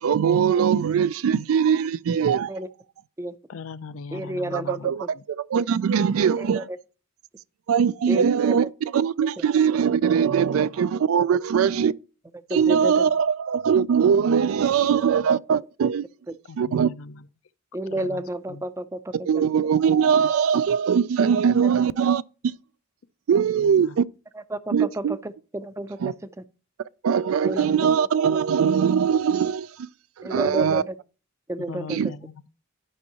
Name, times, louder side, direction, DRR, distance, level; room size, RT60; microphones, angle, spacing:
voice 1, 0.0-2.5 4.5-6.7 7.7-11.9 12.5-16.0 16.6-16.9 19.2-22.2 23.3-24.0 24.7-25.2 26.0-26.1 27.0-29.9 30.2-30.8 31.9-32.1, right 7 dB, 75° right, 0.3 m, -21 dB
voice 2, 3.5-5.2 13.0-13.1 16.4-17.3 17.9-18.2 18.5-18.6 23.3-24.0 31.7-32.5, left 4 dB, 75° left, 0.5 m, -40 dB
voice 3, 4.1-5.1 6.4-6.8 8.1-8.6 9.4-9.5 10.5-10.6 12.5-13.1 14.8-15.0 17.7-19.1 21.6-21.7 24.5-26.1 27.5-27.9 30.2-30.9 31.5-32.0, right 1 dB, 15° right, 0.5 m, -31 dB
12.0 x 5.5 x 2.8 m
head